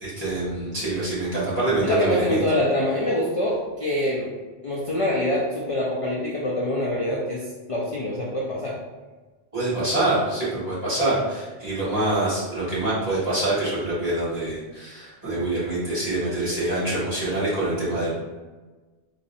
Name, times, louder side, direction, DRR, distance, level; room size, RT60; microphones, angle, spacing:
voice 1, 0.0-2.4 9.5-18.1, right 2 dB, 35° right, -10 dB, 1.7 m, -25 dB
voice 2, 1.8-4.3 4.6-8.8, left 1 dB, 50° left, -3 dB, 0.4 m, -25 dB
4.0 x 2.6 x 2.6 m, 1.3 s
omnidirectional pair, 1.1 m